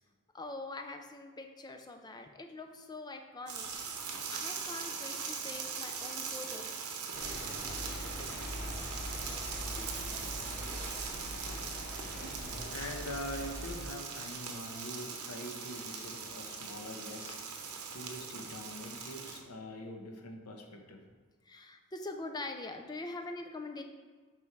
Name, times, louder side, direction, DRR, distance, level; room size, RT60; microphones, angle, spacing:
voice 1, 0.3-3.7 4.3-7.0 9.1-9.2 9.7-11.1 21.4-23.8, left 2 dB, 20° left, 5 dB, 0.5 m, -44 dB
sound 1, 3.5-19.4, right 6 dB, 70° right, 0.9 m, -41 dB
sound 2, 7.1-13.8, equal, 45° left, 1.8 m, -42 dB
voice 2, 9.3-10.1 11.2-21.0, left 1 dB, 85° left, 3 dB, 1.0 m, -45 dB
5.8 x 5.4 x 4.6 m, 1.5 s
head